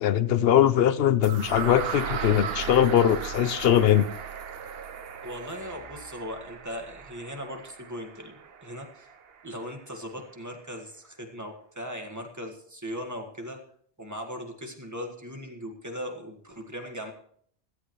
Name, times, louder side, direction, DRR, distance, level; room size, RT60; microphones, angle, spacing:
voice 1, 0.0-4.1, left 10 dB, 65° left, 0.8 m, -21 dB
sound 1, 1.2-9.2, right 7 dB, 60° right, 1.0 m, -37 dB
voice 2, 5.2-9.1 9.4-13.6 14.0-17.1, equal, 15° right, 1.7 m, -38 dB
16.5 x 13.5 x 3.1 m
omnidirectional pair, 1.2 m